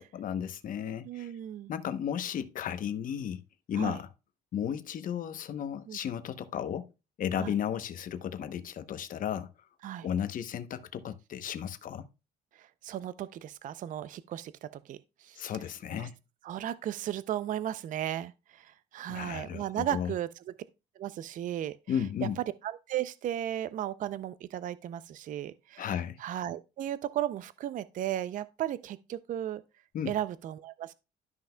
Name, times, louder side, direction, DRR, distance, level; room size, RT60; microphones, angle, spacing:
voice 1, 0.0-1.3 1.7-3.4 3.7-4.1 4.5-6.9 7.2-9.5 10.0-12.1 15.4-16.2 19.1-20.1 21.9-22.4 25.8-26.2 29.9-30.1, left 9 dB, 55° left, 0.9 m, -34 dB
voice 2, 1.1-1.7 3.7-4.0 5.9-6.0 7.4-7.5 9.8-10.1 12.5-15.5 16.0-16.1 16.4-20.4 21.0-21.8 22.2-29.6 30.1-30.9, right 11 dB, 50° right, 0.5 m, -35 dB
12.5 x 5.7 x 2.2 m
cardioid pair, 110°, 17 cm